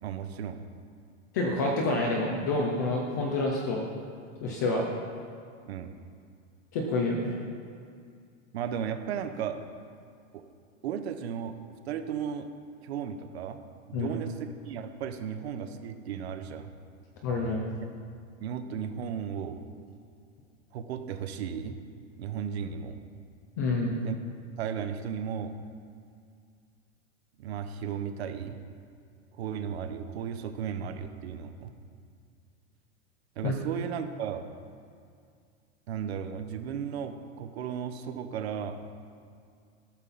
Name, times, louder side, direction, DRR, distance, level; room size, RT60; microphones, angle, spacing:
voice 1, 0.0-0.6 5.7-5.9 8.5-9.6 10.3-10.5 10.8-11.6 11.9-12.5 12.8-13.6 13.9-16.7 18.4-19.6 20.7-21.8 22.2-23.0 24.0-24.2 24.6-25.6 27.4-28.6 29.4-31.8 33.4-34.5 35.9-38.8, right 8 dB, 55° right, 9 dB, 1.0 m, -35 dB
voice 2, 1.3-3.8 4.4-4.8 6.7-7.4 13.9-14.2 17.2-17.6 23.6-23.9 33.4-33.5, left 2 dB, 15° left, 0 dB, 0.4 m, -28 dB
13.5 x 12.5 x 4.1 m, 2.3 s
supercardioid pair, 175°, 39 cm